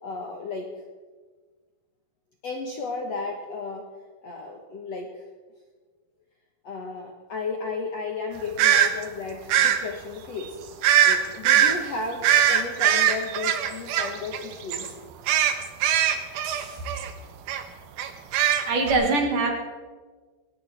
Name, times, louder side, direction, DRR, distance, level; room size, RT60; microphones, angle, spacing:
voice 1, 0.0-0.7 2.4-3.8 4.2-5.1 6.6-10.6 11.0-14.9, left 4 dB, 60° left, 1 dB, 1.9 m, -34 dB
sound 1, 8.6-8.9 9.5-9.8 10.8-11.2 11.4-11.8 12.2-14.4 14.7-14.9 15.3-17.1 17.5-17.6 18.0-18.9, right 10 dB, 75° right, 2.8 m, -20 dB
voice 2, 16.4-16.9 18.4-19.5, right 3 dB, 60° right, 1 dB, 3.2 m, -25 dB
19.5 x 18.0 x 3.5 m, 1.4 s
omnidirectional pair, 4.5 m